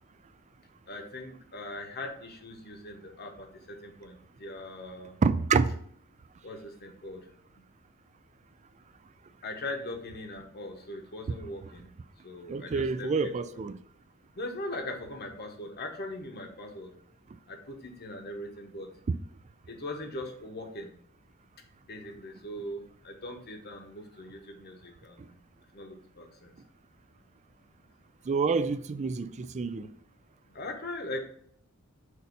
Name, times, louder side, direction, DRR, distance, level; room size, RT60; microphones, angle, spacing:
voice 1, 0.9-5.2 6.4-7.3 7.5-7.6 9.4-11.9 12.2-13.3 14.3-16.9 17.5-18.9 19.7-20.9 21.9-25.4 25.7-26.5 30.5-31.2, left 1 dB, 50° left, 1.1 m, -40 dB
voice 2, 5.2-5.7 12.5-13.8 28.3-29.9, right 4 dB, 30° right, 0.3 m, -27 dB
6.5 x 2.7 x 5.4 m
head